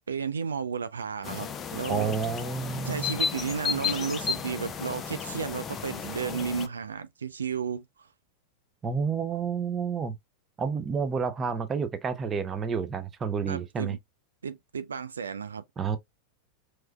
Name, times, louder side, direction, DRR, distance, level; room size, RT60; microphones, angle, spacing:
voice 1, 0.1-2.1 2.8-8.1 13.5-14.0 14.4-15.6, right 6 dB, 70° right, 0.3 m, -33 dB
sound 1, 1.2-6.7, left 6 dB, 25° left, 0.5 m, -33 dB
voice 2, 1.9-3.2 8.8-10.2 10.6-14.0 15.8-16.0, right 6 dB, 20° right, 0.6 m, -30 dB
4.5 x 3.2 x 2.2 m
figure-of-eight pair, 90°, 0 cm